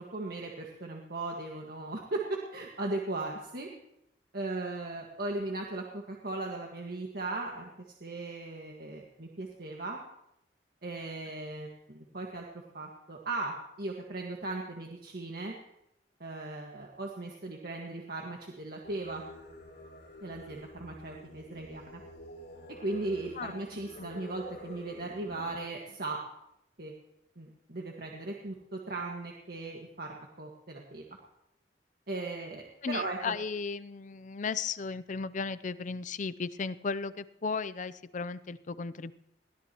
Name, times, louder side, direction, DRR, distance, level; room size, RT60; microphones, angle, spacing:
voice 1, 0.0-3.7 4.3-10.0 10.8-12.5 12.7-15.5 16.2-19.2 20.2-22.0 22.8-26.2 26.8-26.9 27.4-31.0 32.1-33.4, right 2 dB, 60° right, -1 dB, 1.7 m, -37 dB
Singing, 18.8-25.6, left 1 dB, 70° left, 4.0 m, -49 dB
voice 2, 32.8-39.1, left 5 dB, 45° left, 16 dB, 0.5 m, -35 dB
22.0 x 16.5 x 3.0 m, 0.83 s
head